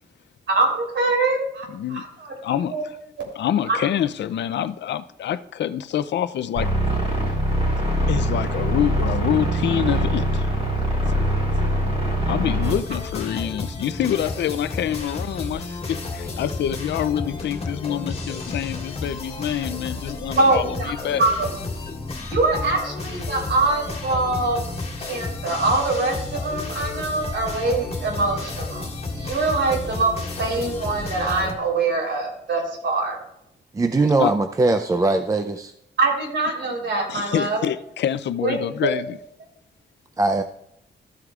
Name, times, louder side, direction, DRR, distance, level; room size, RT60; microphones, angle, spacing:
voice 1, 0.5-2.8 3.2-3.3 3.7-3.8 20.4-20.9 21.2-21.5 22.3-24.6 25.0-28.8 29.1-33.2 36.0-37.6 38.4-38.5 38.8-38.9, right 3 dB, 80° right, 3.5 m, -23 dB
voice 2, 1.7-2.0 2.4-3.0 3.4-6.7 8.1-10.5 12.2-21.3 34.2-34.3 37.1-39.2, left 10 dB, 75° left, 0.4 m, -26 dB
sound 1, 6.5-12.7, right 1 dB, 35° right, 3.4 m, -23 dB
sound 2, 12.6-31.5, left 3 dB, 35° left, 1.8 m, -32 dB
voice 3, 33.7-35.7 40.2-40.4, right 3 dB, 20° right, 0.4 m, -20 dB
13.5 x 8.0 x 2.4 m
wide cardioid pair, 170°, 18 cm